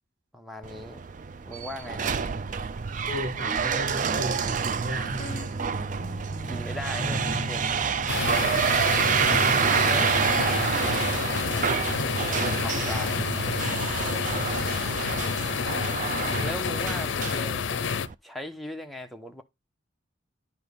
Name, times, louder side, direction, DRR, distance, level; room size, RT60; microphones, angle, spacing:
voice 1, 0.3-1.0 1.4-2.2 6.4-7.9 9.7-10.7 12.0-13.3 16.4-17.6 18.2-19.4, equal, ahead, 0.9 m, -38 dB
sound 1, 0.6-18.1, right 6 dB, 45° right, 0.4 m, -28 dB
sound 2, 3.1-12.8, left 1 dB, 35° left, 0.8 m, -41 dB
voice 2, 3.1-5.5 9.1-9.7 16.3-16.8, right 1 dB, 65° right, 1.8 m, -35 dB
sound 3, 8.1-18.1, left 6 dB, 80° left, 0.5 m, -29 dB
10.5 x 4.4 x 3.5 m
head